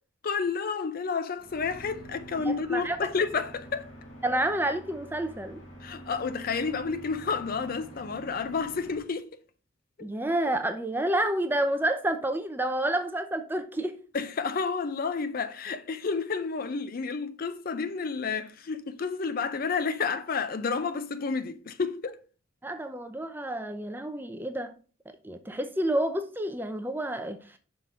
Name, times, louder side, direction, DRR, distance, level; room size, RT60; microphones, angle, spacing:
voice 1, 0.2-3.9 5.8-9.3 10.0-10.1 14.1-22.2, left 5 dB, 45° left, 0.5 m, -30 dB
sound 1, 1.4-9.0, right 1 dB, 70° left, 1.7 m, -47 dB
voice 2, 2.4-3.0 4.2-5.6 10.0-14.0 22.6-24.8 25.2-27.4, right 1 dB, 10° right, 0.6 m, -29 dB
5.9 x 3.7 x 5.4 m
head